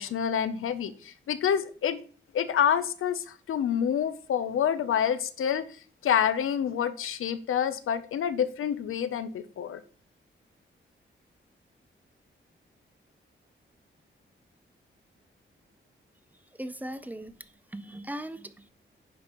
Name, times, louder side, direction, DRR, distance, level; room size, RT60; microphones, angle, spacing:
voice 1, 0.0-2.0 2.3-5.6 6.0-9.8, left 8 dB, 85° left, 0.6 m, -27 dB
voice 2, 16.6-18.7, right 1 dB, 10° right, 0.5 m, -39 dB
9.4 x 5.2 x 3.0 m
wide cardioid pair, 100°, 21 cm